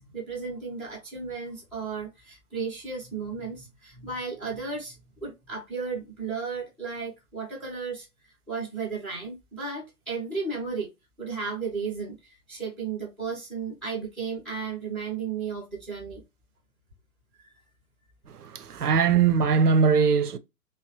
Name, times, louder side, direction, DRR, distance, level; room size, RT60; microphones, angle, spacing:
voice 1, 0.0-8.1 8.5-10.9 11.2-16.2 17.4-17.6, right 5 dB, ahead, 0.5 m, -34 dB
voice 2, 18.4-20.4, right 6 dB, 90° right, 0.5 m, -21 dB
3.0 x 2.0 x 2.8 m
figure-of-eight pair, 125°, 44 cm